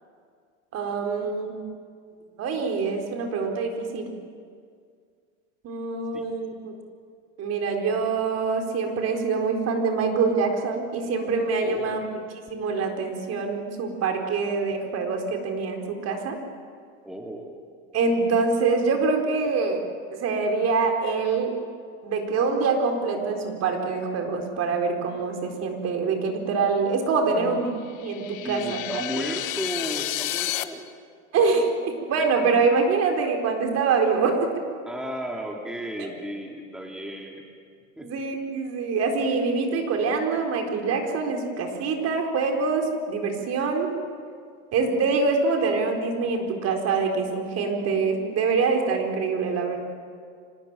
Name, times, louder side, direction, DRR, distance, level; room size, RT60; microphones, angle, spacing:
voice 1, 0.7-1.7 2.4-4.1 5.6-6.7 7.4-12.0 12.5-16.4 17.9-19.8 20.2-21.5 22.0-27.7 28.0-29.0 31.3-34.5 38.0-43.9 44.7-49.8, right 4 dB, 40° right, 3 dB, 4.4 m, -25 dB
voice 2, 11.6-12.1 17.0-17.6 27.3-27.6 28.4-30.9 34.9-37.5 38.0-38.1, equal, ahead, 0 dB, 2.5 m, -34 dB
sound 1, 27.9-30.6, left 15 dB, 85° left, 1.3 m, -31 dB
25.5 x 20.0 x 9.1 m, 2.1 s
supercardioid pair, 120°, 38 cm